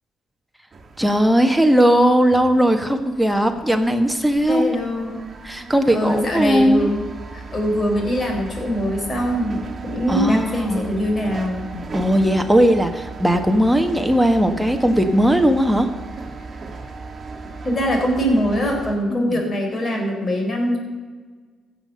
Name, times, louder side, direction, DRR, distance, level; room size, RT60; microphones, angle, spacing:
sound 1, 0.7-19.0, right 3 dB, 40° right, 1.9 m, -36 dB
voice 1, 1.0-4.7 5.4-6.9 10.1-10.9 11.9-15.9 19.1-19.4, equal, 5° right, 5 dB, 1.5 m, -18 dB
voice 2, 4.5-5.2 5.9-7.1 7.3-11.8 17.6-20.8, equal, 40° left, 1 dB, 4.4 m, -22 dB
15.5 x 7.0 x 6.9 m, 1.4 s
cardioid pair, 75°, 0 cm